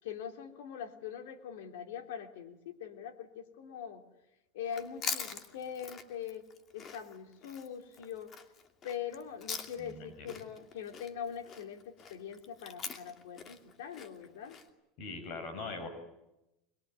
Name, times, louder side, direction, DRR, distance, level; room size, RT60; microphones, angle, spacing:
voice 1, 0.0-4.0 4.5-6.5 6.7-8.3 8.8-14.6, left 8 dB, 85° left, 5 dB, 3.3 m, -42 dB
Chewing mastication, 4.7-10.0 10.3-14.7, left 6 dB, 35° left, 2.6 m, -43 dB
voice 2, 9.8-10.3 15.0-15.9, left 3 dB, 55° left, 7 dB, 7.1 m, -41 dB
22.5 x 22.5 x 9.6 m, 0.91 s
supercardioid pair, 130°, 0 cm